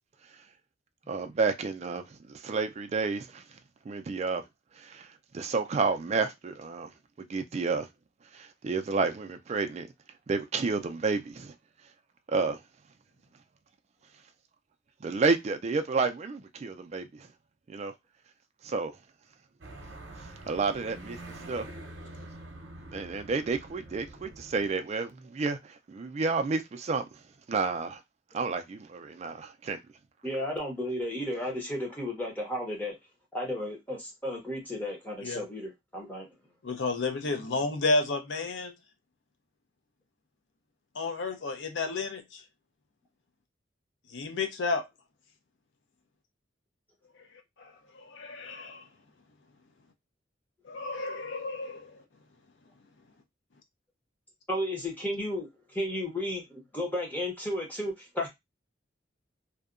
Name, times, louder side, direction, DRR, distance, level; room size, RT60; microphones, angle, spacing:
voice 1, 1.1-3.4 3.9-4.4 4.8-5.1 5.3-6.9 7.3-7.9 8.3-9.9 10.3-11.5 12.3-12.6 15.0-17.3 17.7-17.9 18.6-18.9 20.5-21.2 21.5-21.7 22.9-25.6 25.9-27.1 27.5-28.0 28.3-29.8, right 4 dB, 35° right, 0.3 m, -30 dB
sound 1, 19.6-24.7, right 1 dB, 90° right, 0.7 m, -46 dB
voice 2, 30.2-32.9 33.3-36.3 54.5-58.3, left 1 dB, 10° left, 0.8 m, -33 dB
voice 3, 36.6-38.7 40.9-42.4 44.1-44.8 47.6-48.8 50.6-52.0, left 3 dB, 75° left, 0.5 m, -31 dB
2.7 x 2.2 x 2.4 m
head